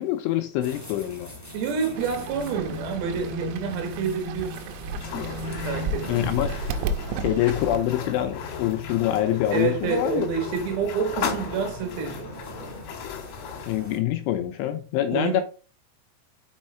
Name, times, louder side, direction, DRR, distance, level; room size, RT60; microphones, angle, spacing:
voice 1, 0.0-1.3 6.1-6.6 7.2-10.3 13.7-15.4, left 13 dB, 85° left, 2.9 m, -25 dB
sound 1, 0.6-14.0, left 1 dB, 10° left, 0.7 m, -39 dB
voice 2, 1.5-4.8 5.6-6.3 9.5-12.3 15.1-15.4, right 6 dB, 70° right, 3.0 m, -28 dB
Fowl / Bird, 1.9-7.8, right 3 dB, 85° right, 3.5 m, -34 dB
sound 2, 4.9-13.8, left 7 dB, 60° left, 2.7 m, -37 dB
6.4 x 6.3 x 4.3 m
omnidirectional pair, 6.0 m